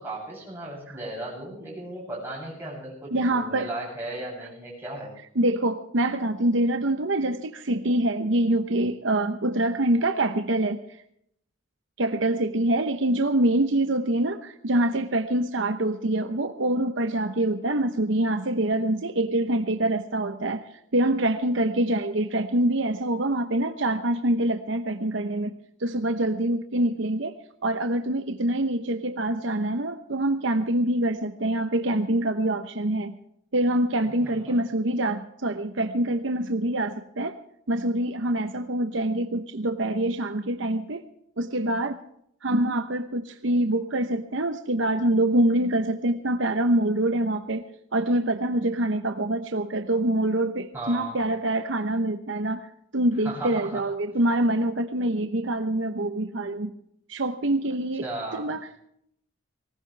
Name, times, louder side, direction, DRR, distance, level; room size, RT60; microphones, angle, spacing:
voice 1, 0.0-5.1 34.1-34.5 50.7-51.2 53.2-53.8 58.0-58.5, right 2 dB, 10° right, -4 dB, 7.7 m, -36 dB
voice 2, 3.1-3.7 5.4-10.8 12.0-20.6 20.9-25.5 25.8-27.4 27.6-33.2 33.5-37.4 37.7-41.0 41.4-42.0 42.4-47.6 47.9-52.7 52.9-56.7 57.1-58.1 58.3-58.9, right 1 dB, 65° right, 8 dB, 0.9 m, -25 dB
19.5 x 18.5 x 3.4 m, 0.71 s
head